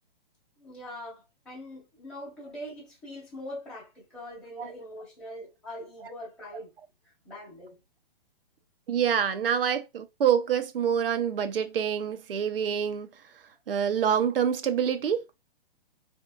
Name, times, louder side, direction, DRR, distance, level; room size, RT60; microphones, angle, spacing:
voice 1, 0.6-6.7 7.2-7.8, left 1 dB, 5° left, 1.0 m, -42 dB
voice 2, 8.9-13.1 13.7-15.2, right 8 dB, 70° right, 0.7 m, -26 dB
3.6 x 2.7 x 2.3 m
hypercardioid pair, 160°, 29 cm